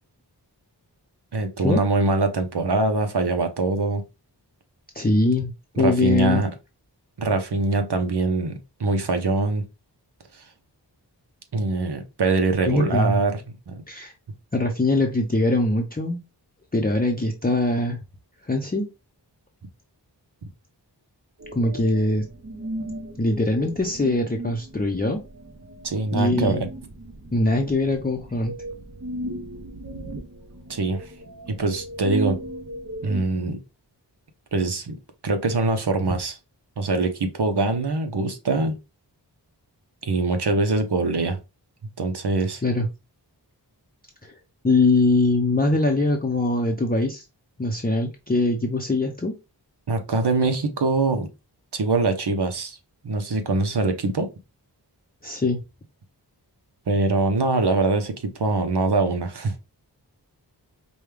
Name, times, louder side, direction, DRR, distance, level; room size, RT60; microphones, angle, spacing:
voice 1, 1.3-4.0 5.8-6.5 7.2-9.6 11.5-13.8 25.8-26.7 30.7-31.1 31.5-32.4 33.0-33.6 34.5-35.0 35.2-36.4 36.8-38.8 40.0-41.4 42.0-42.6 49.9-51.3 51.7-52.8 53.0-54.3 56.9-59.7, right 3 dB, 70° right, 0.9 m, -23 dB
voice 2, 4.9-6.4 12.7-13.2 13.9-14.1 14.5-16.2 16.7-18.0 18.4-18.9 21.5-22.3 23.2-25.2 26.1-26.7 27.3-28.5 42.6-42.9 44.2-44.3 44.6-47.2 47.6-49.4 55.2-55.6, left 2 dB, 20° left, 0.7 m, -22 dB
sound 1, 21.4-33.2, right 1 dB, 40° right, 0.9 m, -36 dB
5.1 x 2.3 x 3.3 m
wide cardioid pair, 45°, 42 cm